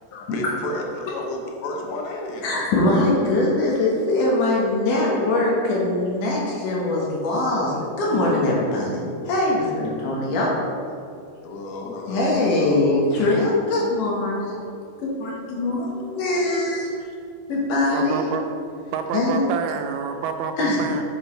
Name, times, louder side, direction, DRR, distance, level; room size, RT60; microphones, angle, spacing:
voice 1, 0.1-2.7 11.4-13.8 15.3-15.4 16.5-16.6 17.0-17.2, left 2 dB, 85° left, 1 dB, 2.8 m, -32 dB
voice 2, 2.4-10.5 12.1-16.9 17.5-18.3 19.1-19.5 20.6-21.0, left 2 dB, 65° left, -4 dB, 2.5 m, -22 dB
voice 3, 17.9-18.5 18.9-21.0, right 6 dB, 90° right, 6 dB, 2.5 m, -28 dB
7.9 x 6.9 x 3.1 m, 2.3 s
omnidirectional pair, 4.4 m